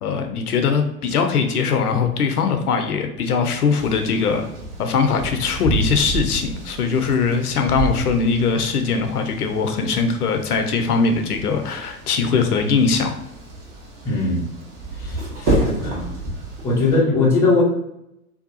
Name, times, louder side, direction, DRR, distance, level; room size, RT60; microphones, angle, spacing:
voice 1, 0.0-4.5 4.8-13.2, left 5 dB, 80° left, 6 dB, 0.6 m, -21 dB
sound 1, 3.8-17.0, right 2 dB, 40° right, 1.0 m, -30 dB
voice 2, 14.0-14.5 14.9-16.1 16.6-17.6, left 3 dB, 5° left, -5 dB, 0.3 m, -20 dB
2.7 x 2.2 x 2.6 m, 0.83 s
figure-of-eight pair, 90°, 44 cm